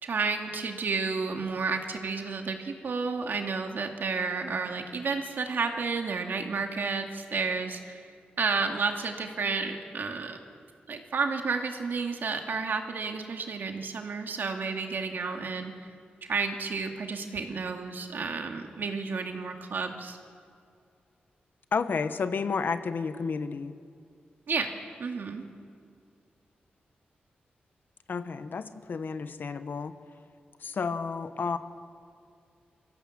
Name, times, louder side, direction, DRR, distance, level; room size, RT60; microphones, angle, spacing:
voice 1, 0.0-8.1 8.4-10.6 10.9-15.7 16.2-20.2 24.5-24.7 25.0-25.4, right 4 dB, 70° right, 4 dB, 2.2 m, -31 dB
voice 2, 21.7-23.7 28.1-29.9 30.6-31.6, left 5 dB, 65° left, 11 dB, 1.2 m, -31 dB
24.5 x 15.5 x 7.5 m, 2.3 s
cardioid pair, 70°, 4 cm